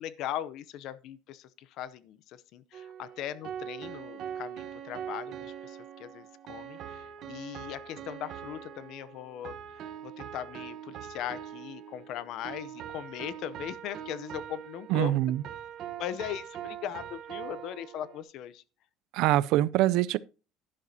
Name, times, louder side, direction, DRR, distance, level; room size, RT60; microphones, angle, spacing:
voice 1, 0.0-2.2 2.5-9.5 10.0-15.2 16.0-18.6, left 11 dB, 55° left, 0.6 m, -39 dB
sound 1, 2.7-18.2, right 9 dB, 45° right, 1.1 m, -42 dB
voice 2, 14.9-15.4 19.1-20.2, right 15 dB, 65° right, 0.4 m, -24 dB
12.0 x 11.0 x 2.8 m
cardioid pair, 170°, 0 cm